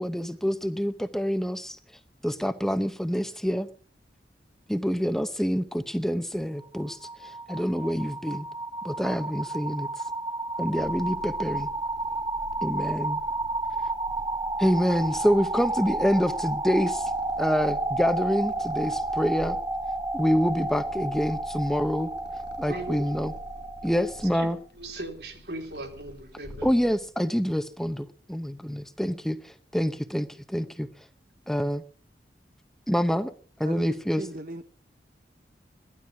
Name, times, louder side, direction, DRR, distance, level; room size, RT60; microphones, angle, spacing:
voice 1, 0.0-1.8 2.2-3.7 4.7-8.5 8.8-10.0 10.6-11.7 12.6-13.2 14.6-17.1 17.4-19.6 20.1-22.1 22.6-23.3 23.8-24.6 26.6-30.9 31.5-31.8 32.9-33.3 33.6-34.2, equal, ahead, 0.7 m, -27 dB
sound 1, 6.6-24.5, right 2 dB, 20° right, 1.1 m, -31 dB
Purr, 10.4-27.2, left 1 dB, 75° left, 1.2 m, -46 dB
voice 2, 22.7-23.0 24.3-24.5 24.8-26.7, right 1 dB, 70° right, 3.3 m, -38 dB
voice 3, 33.6-34.6, right 1 dB, 50° right, 1.0 m, -39 dB
17.0 x 12.5 x 5.8 m
head